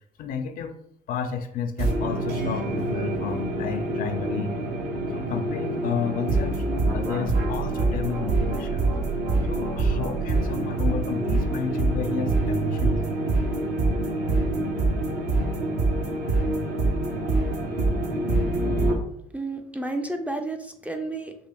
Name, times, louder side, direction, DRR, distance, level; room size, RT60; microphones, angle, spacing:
voice 1, 0.2-0.8 1.1-4.6 5.1-8.9 9.5-13.2, left 6 dB, 55° left, 8 dB, 0.4 m, -32 dB
sound 1, 1.8-19.0, right 2 dB, 75° right, 0.8 m, -25 dB
voice 2, 19.3-21.4, right 2 dB, 10° right, 4 dB, 0.3 m, -31 dB
4.4 x 2.7 x 2.3 m, 0.71 s
cardioid pair, 110°, 17 cm